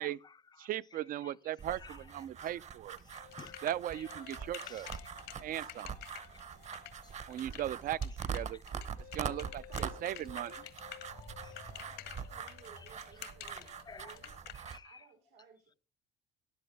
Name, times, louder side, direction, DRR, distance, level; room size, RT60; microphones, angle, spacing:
voice 1, 0.0-0.4 0.9-1.2 1.7-2.0 2.4-2.6 3.1-5.1 5.5-6.0 7.5-8.0 11.1-11.9 12.8-12.9 13.9-14.2 14.7-15.1, left 6 dB, 25° left, 0.5 m, -55 dB
voice 2, 0.6-3.0 3.6-4.9 5.4-5.9 7.3-8.0 8.3-8.6 9.1-10.5, right 12 dB, 55° right, 0.5 m, -38 dB
sound 1, 1.6-14.8, right 7 dB, 40° right, 0.9 m, -43 dB
sound 2, 3.0-14.5, left 13 dB, 85° left, 1.7 m, -49 dB
sound 3, 3.2-7.6 9.0-14.4, left 12 dB, 60° left, 0.7 m, -57 dB
voice 3, 9.7-10.3 11.7-14.3 14.8-15.8, right 7 dB, 90° right, 2.3 m, -59 dB
14.0 x 10.5 x 3.4 m
cardioid pair, 110°, 17 cm